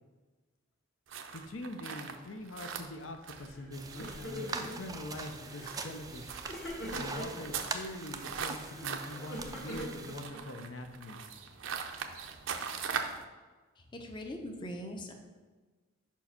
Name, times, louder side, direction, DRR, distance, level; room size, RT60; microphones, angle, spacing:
sound 1, 1.1-13.2, right 6 dB, 70° right, 0.6 m, -41 dB
voice 1, 1.3-6.4 7.0-11.2, left 1 dB, 75° left, 5 dB, 0.6 m, -43 dB
Crying sobbing, 3.3-3.7 3.9-5.0 5.5-5.9 6.5-7.5 8.4-10.6, equal, 55° left, 1.5 m, -43 dB
sound 2, 3.7-10.2, right 4 dB, 20° right, 0.3 m, -43 dB
voice 2, 13.9-15.1, left 1 dB, 25° left, 3 dB, 0.6 m, -41 dB
5.3 x 4.6 x 5.7 m, 1.3 s
head